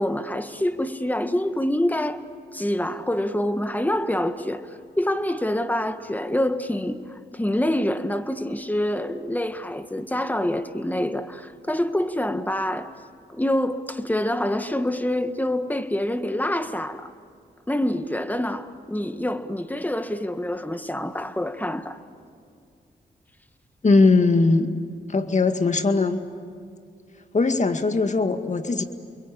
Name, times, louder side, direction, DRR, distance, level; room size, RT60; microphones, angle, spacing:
voice 1, 0.0-2.2 2.5-4.7 5.0-12.9 13.3-17.1 17.7-22.0, left 1 dB, 10° left, 1.7 m, -26 dB
voice 2, 23.8-24.7 25.1-26.2 27.3-28.8, left 3 dB, 40° left, 2.0 m, -20 dB
29.5 x 22.5 x 8.7 m
cardioid pair, 60°, 18 cm